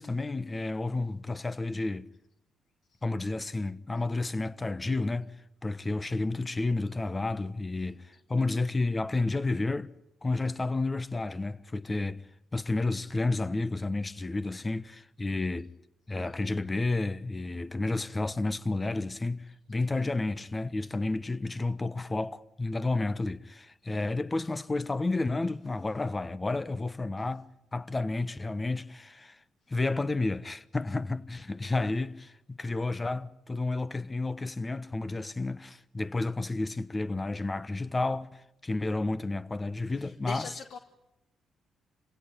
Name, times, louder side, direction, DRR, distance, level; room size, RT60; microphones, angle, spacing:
voice 1, 0.0-2.1 3.0-5.3 5.6-9.9 10.2-12.2 12.5-15.7 16.1-29.4 29.7-40.5, left 2 dB, 25° left, 1.2 m, -31 dB
voice 2, 40.0-40.8, left 5 dB, 65° left, 1.4 m, -41 dB
26.5 x 17.0 x 9.9 m
supercardioid pair, 55°, 0 cm